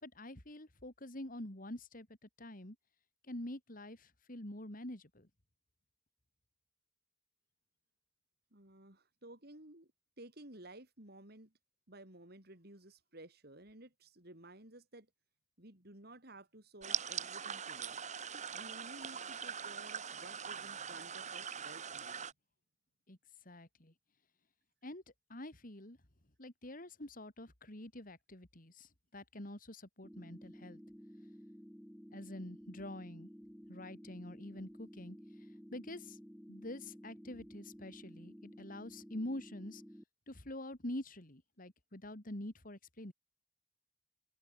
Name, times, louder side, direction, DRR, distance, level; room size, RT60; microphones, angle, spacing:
voice 1, 0.0-2.1 2.4-2.8 3.3-5.3 23.1-23.2 23.5-23.9 24.8-25.0 25.3-26.0 26.4-30.8 32.1-33.3 33.7-35.2 35.7-36.2 36.5-39.8 40.3-43.1, left 1 dB, 45° left, 3.5 m, -46 dB
voice 2, 8.5-9.9 10.2-11.5 11.9-15.1 15.6-18.0 18.5-22.3, right 1 dB, 55° right, 5.3 m, -55 dB
sound 1, 16.8-22.3, right 7 dB, 40° right, 2.6 m, -42 dB
sound 2, 30.0-40.0, equal, ahead, 3.7 m, -54 dB
head